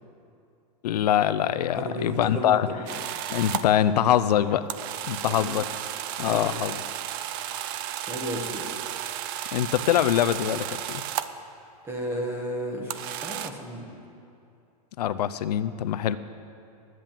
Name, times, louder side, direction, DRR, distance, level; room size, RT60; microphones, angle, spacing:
voice 1, 0.8-2.7 3.3-4.6 5.1-5.7 6.2-6.7 9.5-11.0 15.0-16.2, left 11 dB, 90° left, 12 dB, 0.5 m, -24 dB
voice 2, 1.7-3.0 5.2-5.6 6.2-6.5 8.1-8.7 11.8-14.0, equal, 10° right, 0 dB, 1.4 m, -34 dB
sound 1, 2.9-3.7 4.7-11.4 12.9-13.5, right 11 dB, 35° right, 0.4 m, -33 dB
11.0 x 7.6 x 8.8 m, 2.6 s
supercardioid pair, 160°, 20 cm